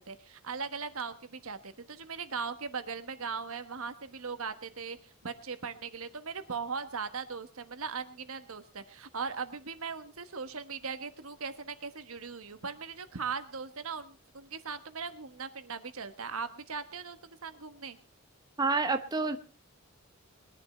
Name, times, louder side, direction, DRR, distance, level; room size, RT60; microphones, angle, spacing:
voice 1, 0.0-18.0, right 5 dB, 75° right, 10 dB, 1.3 m, -39 dB
voice 2, 18.6-19.4, right 3 dB, 20° right, 8 dB, 0.7 m, -28 dB
21.0 x 10.5 x 4.3 m, 0.35 s
head